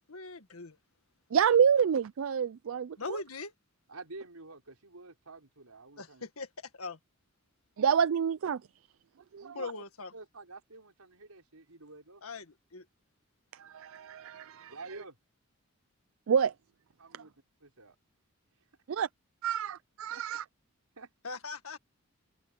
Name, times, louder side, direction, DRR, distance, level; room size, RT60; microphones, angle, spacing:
voice 1, 0.1-0.8 3.0-3.5 6.0-6.5 6.7-7.0 9.5-10.1 12.2-12.8 21.2-21.8, left 3 dB, 75° left, 1.8 m, -40 dB
voice 2, 1.3-3.2 7.8-8.6 9.3-9.7 13.6-14.7 16.3-16.5 17.1-17.2 18.9-19.1 19.4-20.4, right 7 dB, 65° right, 0.4 m, -28 dB
voice 3, 3.9-6.2 9.4-9.8 10.1-12.2 14.7-15.2 17.0-17.3 17.6-18.0 20.1-20.2 21.0-21.1, right 3 dB, 90° right, 4.9 m, -49 dB
head